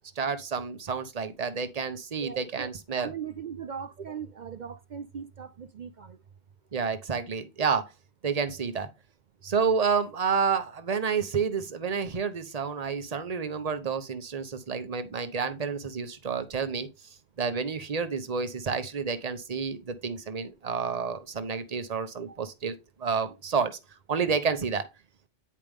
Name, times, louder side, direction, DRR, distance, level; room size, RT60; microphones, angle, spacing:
voice 1, 0.2-3.1 6.7-7.9 8.2-8.9 9.4-16.9 17.4-23.8 24.1-24.9, right 5 dB, 35° right, 1.0 m, -29 dB
voice 2, 2.2-2.7 3.0-6.2 22.3-22.4, right 7 dB, 55° right, 0.5 m, -39 dB
9.7 x 5.1 x 3.6 m
omnidirectional pair, 1.2 m